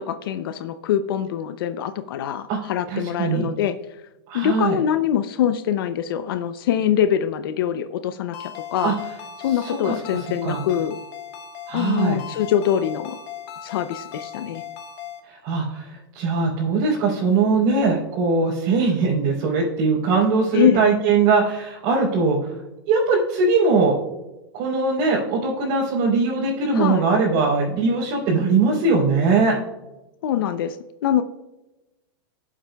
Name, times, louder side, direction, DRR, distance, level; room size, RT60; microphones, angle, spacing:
voice 1, 0.0-4.0 4.3-9.0 9.4-11.0 11.7-13.2 13.6-14.6 20.5-20.8 26.7-27.1 30.2-30.8 31.0-31.2, left 10 dB, 65° left, 10 dB, 0.6 m, -23 dB
voice 2, 2.9-3.5 4.3-4.8 8.8-8.9 9.5-10.6 11.7-12.2 15.2-22.5 22.9-24.0 24.5-29.5, right 4 dB, 45° right, -6 dB, 3.3 m, -21 dB
Ringtone, 8.3-15.2, left 9 dB, 40° left, 1.3 m, -37 dB
17.5 x 7.4 x 2.3 m, 1.0 s
supercardioid pair, 150°, 13 cm